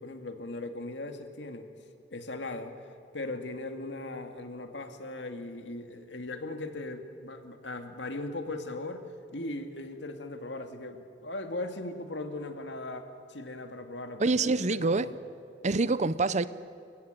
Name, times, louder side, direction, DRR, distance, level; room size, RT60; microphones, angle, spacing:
voice 1, 0.0-1.7 2.1-2.7 3.1-9.0 9.3-15.1, left 2 dB, 70° left, 2.3 m, -38 dB
voice 2, 14.2-15.1 15.6-16.5, right 3 dB, 40° right, 0.7 m, -26 dB
29.5 x 16.0 x 9.2 m
head